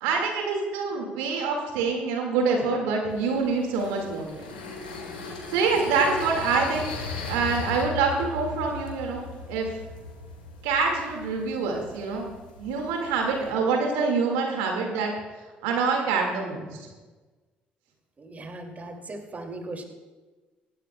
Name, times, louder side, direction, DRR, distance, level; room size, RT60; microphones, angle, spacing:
voice 1, 0.0-4.6 5.5-6.9 7.3-9.7 10.6-12.3 12.6-15.1 15.6-16.8, right 4 dB, 75° right, 2 dB, 1.9 m, -26 dB
sound 1, 3.1-13.5, left 4 dB, 90° left, 1.8 m, -38 dB
voice 2, 18.2-19.8, right 2 dB, 35° right, 4 dB, 2.4 m, -38 dB
19.0 x 15.5 x 2.2 m, 1.3 s
hypercardioid pair, 50°, 5 cm